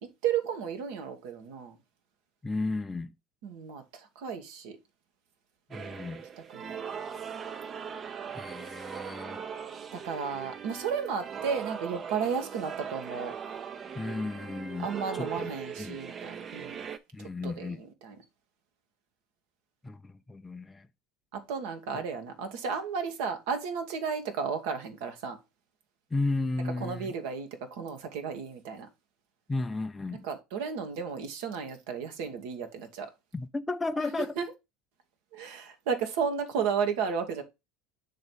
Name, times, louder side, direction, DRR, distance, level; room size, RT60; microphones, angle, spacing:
voice 1, 0.0-1.8 3.4-4.8 6.4-6.9 9.9-13.3 14.8-16.8 17.2-18.2 21.3-25.4 26.8-28.9 30.1-33.1 34.2-34.5 35.3-37.4, right 6 dB, 70° right, 1.4 m, -33 dB
voice 2, 2.4-3.1 5.7-6.2 8.3-9.4 13.9-14.9 15.2-15.5 15.8-16.0 17.1-17.8 19.8-20.9 26.1-27.1 29.5-30.2 33.3-34.3, left 3 dB, 15° left, 0.5 m, -33 dB
sound 1, 5.7-17.0, right 7 dB, 35° right, 0.7 m, -40 dB
7.3 x 3.2 x 5.3 m
hypercardioid pair, 85°, 0 cm